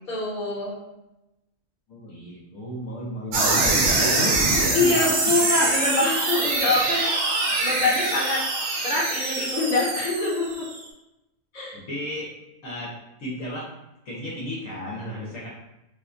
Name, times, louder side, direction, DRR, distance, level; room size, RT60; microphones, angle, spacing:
voice 1, 0.1-0.8 4.7-7.0 7.6-8.5 8.8-10.6 11.5-11.8, left 2 dB, 35° left, -5 dB, 1.0 m, -24 dB
voice 2, 1.9-5.3 5.6-5.7 11.9-12.3 12.6-12.9 13.2-13.7 14.0-15.5, equal, 65° left, -5 dB, 1.1 m, -33 dB
sound 1, 3.3-10.8, right 3 dB, 65° right, 0.7 m, -24 dB
3.5 x 2.2 x 2.5 m, 0.93 s
omnidirectional pair, 1.6 m